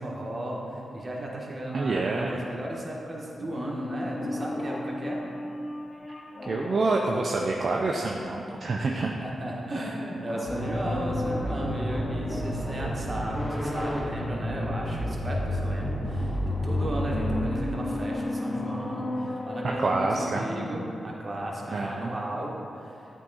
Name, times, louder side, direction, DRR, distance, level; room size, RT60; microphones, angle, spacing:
voice 1, 0.0-5.2 9.2-23.2, right 1 dB, 40° right, -3 dB, 1.4 m, -35 dB
voice 2, 1.7-2.4 6.1-6.2 6.5-9.1 19.8-20.4 21.7-22.1, right 3 dB, 60° right, -1 dB, 0.5 m, -27 dB
sound 1, 3.4-9.1 10.2-13.2 16.0-21.2 21.5-21.6, left 2 dB, 35° left, 0.4 m, -35 dB
sound 2, 10.5-17.6, equal, 5° left, 1.0 m, -30 dB
8.4 x 3.7 x 4.0 m, 2.6 s
cardioid pair, 50°, 0 cm